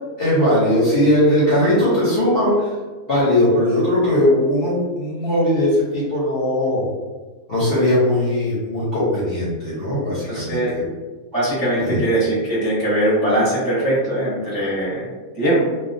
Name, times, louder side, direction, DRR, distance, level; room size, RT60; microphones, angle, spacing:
voice 1, 0.2-2.7 3.1-6.9 7.5-10.9 11.8-12.0, left 1 dB, 55° left, -8 dB, 0.7 m, -19 dB
voice 2, 10.3-10.7 11.3-15.7, right 1 dB, 20° right, -10 dB, 0.7 m, -21 dB
2.2 x 2.2 x 2.5 m, 1.3 s
omnidirectional pair, 1.5 m